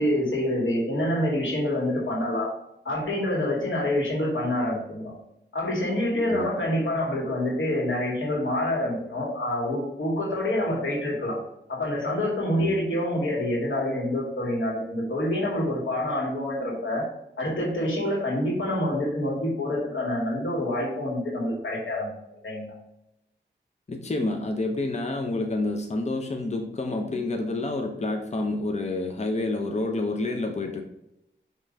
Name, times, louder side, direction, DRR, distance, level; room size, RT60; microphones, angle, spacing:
voice 1, 0.0-2.5 2.8-5.1 5.5-11.4 11.7-17.0 17.4-22.7, left 1 dB, 90° left, -3 dB, 2.1 m, -27 dB
voice 2, 23.9-30.8, left 2 dB, 35° left, 3 dB, 0.8 m, -28 dB
5.6 x 3.1 x 5.4 m, 0.85 s
wide cardioid pair, 60°, 20 cm